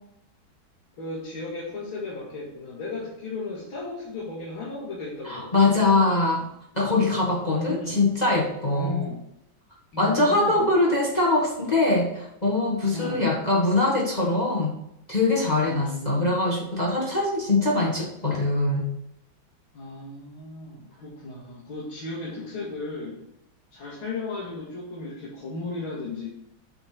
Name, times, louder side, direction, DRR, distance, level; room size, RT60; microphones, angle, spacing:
voice 1, 1.0-6.1 7.4-8.0 8.7-9.2 9.9-10.7 12.9-13.4 15.6-16.3 19.7-23.2 23.7-26.3, left 3 dB, 90° left, -7 dB, 2.9 m, -35 dB
voice 2, 5.2-6.5 6.7-9.0 10.0-14.7 15.1-18.8, left 2 dB, 20° left, -3 dB, 1.5 m, -23 dB
8.9 x 4.6 x 5.9 m, 0.81 s
omnidirectional pair, 2.2 m